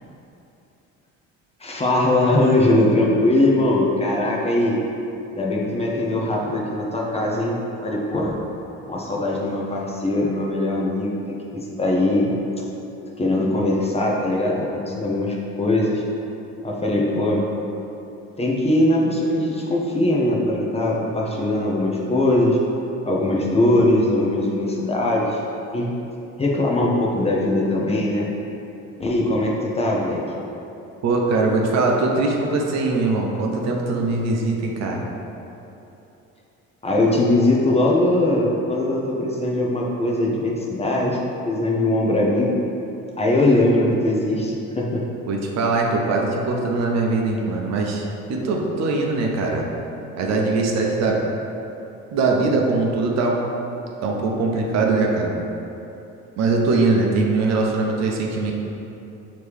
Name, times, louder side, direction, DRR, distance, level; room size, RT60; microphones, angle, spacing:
voice 1, 1.6-4.8 5.3-8.3 8.9-12.3 13.2-16.0 16.6-17.5 18.4-22.6 23.1-25.4 25.7-25.9 26.4-28.3 29.0-30.2 36.8-42.6 43.2-45.0, left 1 dB, 20° left, -3 dB, 0.6 m, -21 dB
voice 2, 31.0-35.1 45.3-49.7 50.2-51.2 52.1-53.4 54.0-55.3 56.4-58.5, right 3 dB, 55° right, 0 dB, 0.7 m, -21 dB
4.5 x 3.0 x 3.4 m, 2.9 s
supercardioid pair, 80°, 31 cm